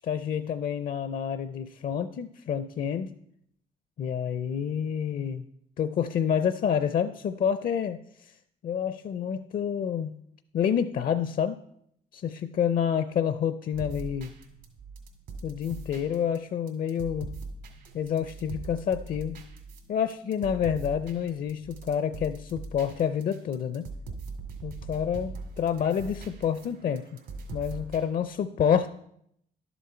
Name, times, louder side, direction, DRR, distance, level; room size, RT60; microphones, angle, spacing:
voice 1, 0.0-3.1 4.0-5.5 5.8-8.3 8.6-10.2 10.5-11.6 12.1-14.3 15.4-17.4 17.9-19.4 19.9-23.9 24.6-27.0 27.5-28.9, left 8 dB, 55° left, 11 dB, 0.5 m, -28 dB
sound 1, 13.7-28.0, right 3 dB, 80° right, 2.2 m, -41 dB
11.5 x 7.1 x 4.4 m, 0.72 s
supercardioid pair, 70°, 18 cm